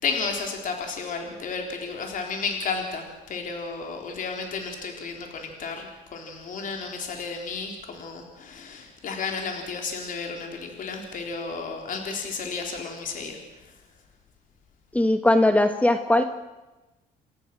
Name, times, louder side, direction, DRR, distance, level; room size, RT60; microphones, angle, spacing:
voice 1, 0.0-13.4, left 4 dB, 50° left, 3 dB, 4.0 m, -32 dB
voice 2, 14.9-16.2, left 1 dB, 10° left, 8 dB, 1.3 m, -19 dB
28.5 x 14.0 x 7.7 m, 1.1 s
cardioid pair, 110°, 17 cm